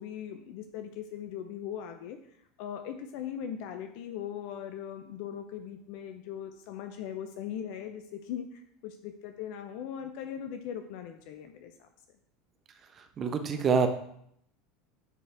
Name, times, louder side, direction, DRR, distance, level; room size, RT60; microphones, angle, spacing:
voice 1, 0.0-2.2 2.6-11.9, left 9 dB, 60° left, 7 dB, 0.6 m, -39 dB
voice 2, 13.0-13.9, right 5 dB, 35° right, 7 dB, 1.0 m, -26 dB
9.7 x 4.5 x 3.5 m, 0.70 s
hypercardioid pair, 75°, 0 cm